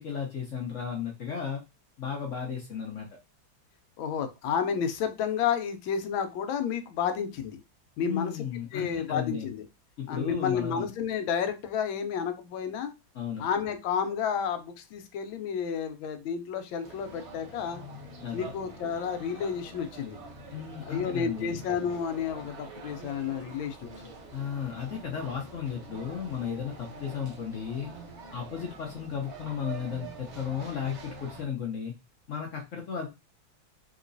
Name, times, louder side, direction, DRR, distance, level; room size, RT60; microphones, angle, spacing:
voice 1, 0.0-1.6 2.0-3.1 8.0-9.5 10.0-10.8 13.1-13.5 18.2-18.5 20.5-21.6 24.3-27.9 28.3-31.9 32.3-33.1, left 7 dB, 70° left, 1 dB, 0.7 m, -34 dB
voice 2, 4.0-7.6 8.0-8.3 8.7-9.6 10.1-12.9 13.4-17.8 18.3-20.2 20.9-24.1, left 7 dB, 85° left, 8 dB, 1.4 m, -31 dB
sound 1, 16.8-31.4, right 3 dB, 55° right, 0.7 m, -45 dB
3.7 x 2.9 x 2.6 m, 0.26 s
omnidirectional pair, 2.1 m